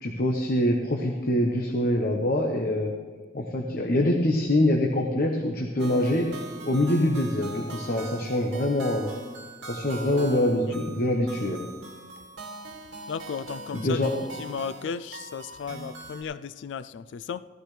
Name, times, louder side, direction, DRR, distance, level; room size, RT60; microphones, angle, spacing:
voice 1, 0.0-2.9 3.3-6.3 6.6-9.1 9.7-11.6 13.7-14.1, left 1 dB, 55° left, 1 dB, 1.0 m, -24 dB
sound 1, 5.8-16.2, right 2 dB, 75° right, 2.0 m, -42 dB
voice 2, 13.1-14.0 14.4-17.5, left 6 dB, 85° left, 15 dB, 0.3 m, -35 dB
15.5 x 12.0 x 3.3 m, 1.5 s
head